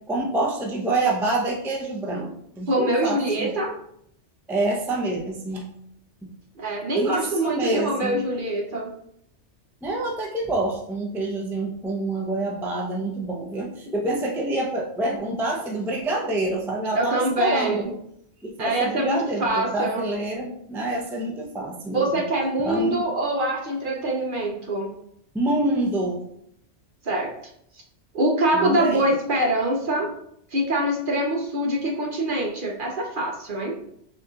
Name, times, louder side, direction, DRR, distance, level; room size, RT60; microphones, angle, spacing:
voice 1, 0.1-3.5 4.5-5.7 6.2-6.3 7.0-8.2 9.8-18.0 18.4-22.2 22.6-23.0 25.3-26.2 28.5-29.1, right 2 dB, 5° right, -1 dB, 0.4 m, -27 dB
voice 2, 2.7-3.7 6.6-8.9 17.0-17.9 18.6-20.0 21.9-24.9 27.0-27.3 28.1-30.1 30.5-33.8, right 1 dB, 55° right, 0 dB, 0.7 m, -24 dB
6.3 x 2.9 x 2.3 m, 0.72 s
omnidirectional pair, 1.2 m